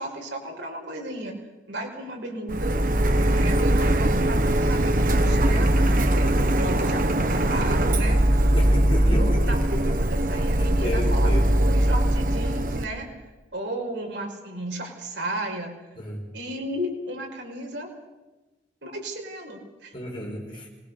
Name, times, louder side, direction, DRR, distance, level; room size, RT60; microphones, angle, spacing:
voice 1, 0.0-1.4 1.7-2.8 3.3-8.2 9.0-13.1 13.5-15.7 16.3-17.9 18.8-19.9, right 1 dB, 75° right, 1 dB, 5.3 m, -34 dB
Printer, 2.5-12.8, right 1 dB, 45° right, 1.2 m, -21 dB
voice 2, 8.5-9.5 10.6-11.5 16.0-16.2 19.9-20.7, equal, 25° left, 0 dB, 5.2 m, -31 dB
25.0 x 21.5 x 6.7 m, 1.1 s
head